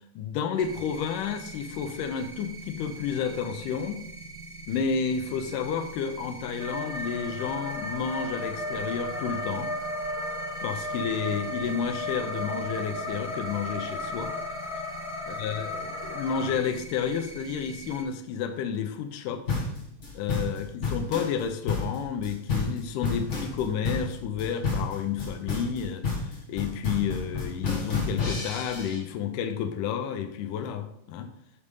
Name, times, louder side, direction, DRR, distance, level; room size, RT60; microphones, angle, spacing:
voice 1, 0.2-4.0 4.7-9.7 10.6-14.3 15.4-19.4 20.1-26.1 26.5-31.3, left 7 dB, 80° left, 7 dB, 2.0 m, -31 dB
sound 1, 0.6-18.0, right 3 dB, 70° right, 2.2 m, -44 dB
sound 2, 6.6-16.5, left 1 dB, 20° left, 0.8 m, -34 dB
sound 3, 19.5-29.0, left 4 dB, 50° left, 0.8 m, -30 dB
8.4 x 3.4 x 5.2 m, 0.73 s
omnidirectional pair, 4.2 m